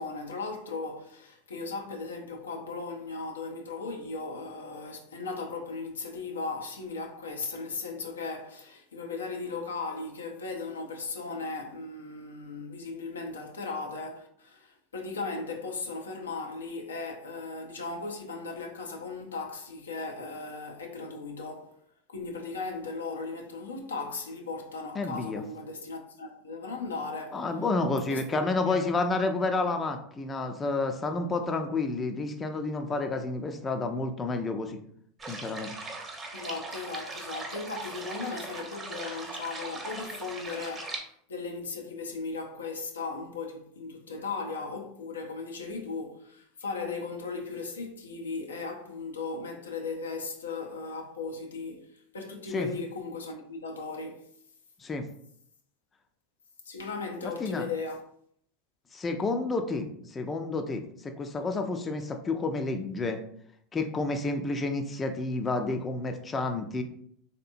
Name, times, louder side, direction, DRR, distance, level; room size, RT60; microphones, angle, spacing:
voice 1, 0.0-21.8 22.1-27.5 28.1-28.8 36.3-51.9 52.1-54.3 56.7-58.0, left 4 dB, 90° left, 0.5 m, -37 dB
voice 2, 24.9-25.4 27.3-34.8 35.3-35.7 52.5-52.7 54.8-55.0 57.2-57.7 58.9-63.2 63.7-66.8, left 3 dB, 25° left, 0.4 m, -30 dB
sound 1, 35.2-41.0, right 3 dB, 25° right, 0.9 m, -39 dB
3.2 x 2.8 x 2.5 m
hypercardioid pair, 85°, 0 cm